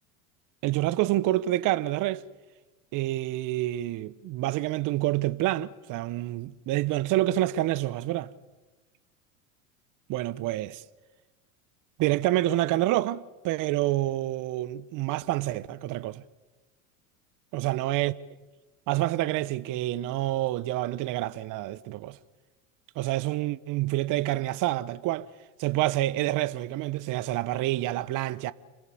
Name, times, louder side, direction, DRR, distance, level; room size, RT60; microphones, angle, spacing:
voice 1, 0.6-2.2 2.9-8.3 10.1-10.8 12.0-16.2 17.5-18.1 18.9-22.2 23.0-25.3 25.6-28.5, right 16 dB, 50° right, 1.0 m, -27 dB
29.0 x 22.0 x 7.2 m
hypercardioid pair, 90°, 41 cm